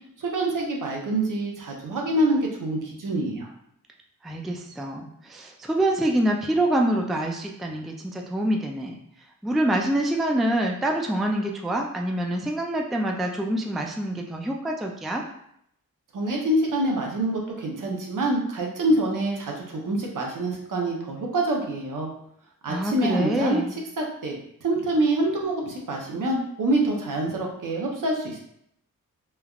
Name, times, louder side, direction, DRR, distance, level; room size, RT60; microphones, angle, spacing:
voice 1, 0.2-3.5 16.1-22.1 22.6-23.6 24.0-28.4, right 1 dB, 65° right, 0 dB, 0.8 m, -26 dB
voice 2, 4.2-9.0 9.4-15.2 22.7-23.7, right 1 dB, ahead, 1 dB, 0.3 m, -26 dB
3.3 x 2.2 x 2.4 m, 0.73 s
cardioid pair, 50°, 34 cm